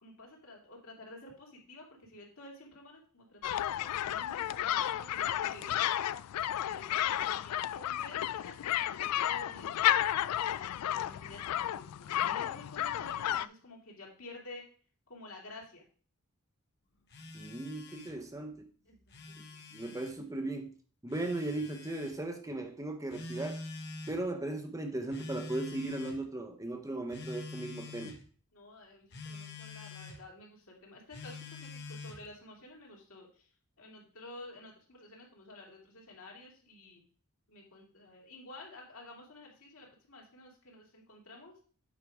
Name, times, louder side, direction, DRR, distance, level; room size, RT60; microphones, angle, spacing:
voice 1, 0.0-5.8 6.6-14.6 15.1-15.8 18.9-20.0 28.5-33.5 33.8-37.0 37.5-41.5, left 2 dB, 65° left, -1 dB, 2.6 m, -51 dB
sound 1, 3.4-13.5, left 12 dB, 90° left, 0.3 m, -32 dB
Telephone, 17.1-18.2 18.9-20.2 21.1-22.2 23.1-24.2 25.1-26.2 27.1-28.2 29.1-30.2 31.1-32.3, left 3 dB, 50° left, 1.2 m, -45 dB
voice 2, 17.3-18.7 19.7-20.7 21.0-23.6 24.1-28.2, right 2 dB, 15° right, 5 dB, 0.7 m, -37 dB
8.5 x 4.8 x 4.8 m, 0.44 s
head